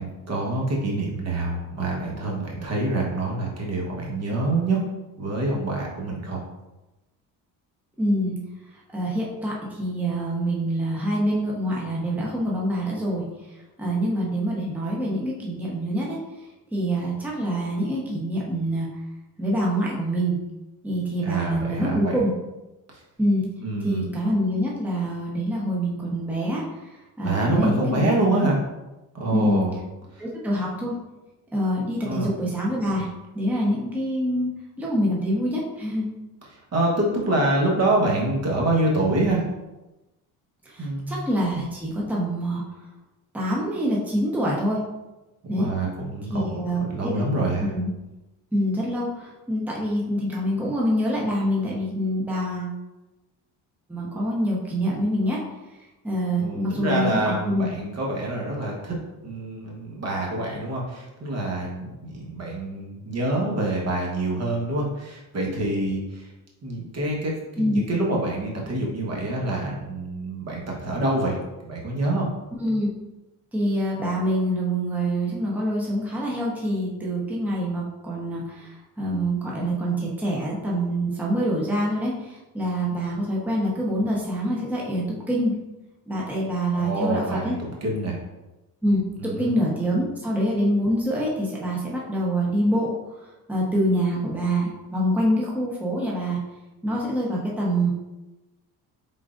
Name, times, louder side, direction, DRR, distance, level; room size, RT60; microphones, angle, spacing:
voice 1, 0.0-4.8 5.2-6.4 21.2-22.2 23.6-24.1 27.2-28.6 29.1-29.7 30.1-30.2 32.0-32.3 36.7-39.4 40.8-41.2 45.5-46.6 46.9-47.7 56.4-59.0 59.2-66.3 66.6-71.4 71.6-72.3 86.7-88.2 89.2-89.5, right 2 dB, 40° right, -2 dB, 1.2 m, -26 dB
voice 2, 8.0-8.4 8.9-13.2 13.8-16.2 16.7-18.9 19.4-20.4 20.8-22.3 23.2-23.4 23.8-26.9 27.2-28.5 29.3-29.6 30.2-30.9 31.5-33.1 33.3-34.5 34.8-36.1 40.6-42.6 43.3-44.8 45.5-45.7 46.3-47.2 47.6-47.9 48.5-52.8 53.9-55.4 56.0-57.7 67.6-67.8 72.6-72.9 73.5-85.5 86.1-87.5 88.8-92.9 93.5-96.4 96.8-97.9, equal, 5° right, -4 dB, 1.0 m, -25 dB
4.8 x 3.7 x 2.5 m, 1.0 s
cardioid pair, 100°, 39 cm